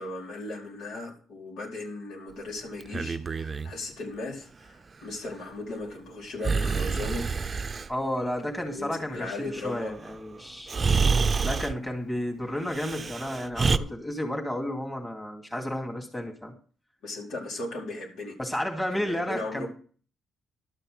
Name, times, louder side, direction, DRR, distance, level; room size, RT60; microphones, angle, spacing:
voice 1, 0.0-7.3 8.5-9.9 17.0-18.4 18.9-19.7, left 2 dB, 80° left, -2 dB, 4.6 m, -37 dB
Breathing, 2.8-3.7 6.4-7.9 10.1-10.2 10.7-11.8 12.7-13.8, right 5 dB, 35° right, 0.6 m, -27 dB
voice 2, 7.9-10.8 11.4-16.5 18.4-19.7, left 1 dB, 10° left, 1 dB, 2.6 m, -32 dB
12.5 x 6.6 x 6.5 m, 0.42 s
cardioid pair, 90°, 0 cm